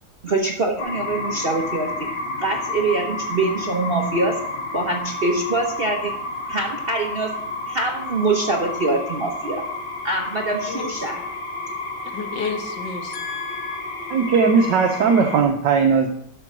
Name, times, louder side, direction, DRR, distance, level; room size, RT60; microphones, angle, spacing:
voice 1, 0.2-1.9 2.4-4.4 4.7-6.1 6.5-7.3 7.7-9.6 10.0-11.2, right 2 dB, 40° right, 2 dB, 1.0 m, -24 dB
sound 1, 0.8-15.4, left 2 dB, 85° left, 2.3 m, -31 dB
voice 2, 10.6-11.2 12.1-13.8, left 5 dB, 65° left, 4 dB, 2.1 m, -32 dB
voice 3, 14.1-16.1, right 5 dB, 70° right, 5 dB, 1.4 m, -18 dB
11.5 x 6.2 x 6.1 m, 0.72 s
omnidirectional pair, 2.1 m